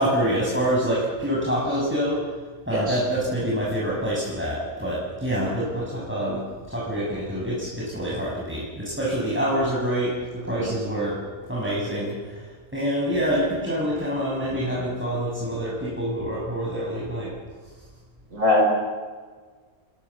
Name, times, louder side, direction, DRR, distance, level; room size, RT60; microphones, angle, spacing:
voice 1, 0.0-2.2 2.6-11.2 11.5-17.3, equal, 10° right, -5 dB, 6.8 m, -26 dB
voice 2, 2.7-3.0 10.6-10.7 18.3-18.6, left 2 dB, 65° right, 0 dB, 5.3 m, -21 dB
29.5 x 23.5 x 7.3 m, 1.5 s
omnidirectional pair, 1.4 m